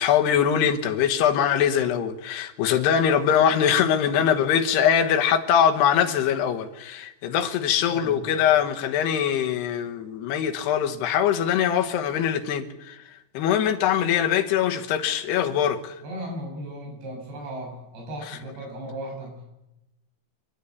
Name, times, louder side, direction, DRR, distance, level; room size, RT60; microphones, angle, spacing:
voice 1, 0.0-16.0 18.3-18.4, left 8 dB, 85° left, 3.3 m, -22 dB
voice 2, 7.9-8.3 16.0-19.5, right 1 dB, 80° right, 8.3 m, -36 dB
28.0 x 11.5 x 8.3 m
omnidirectional pair, 4.7 m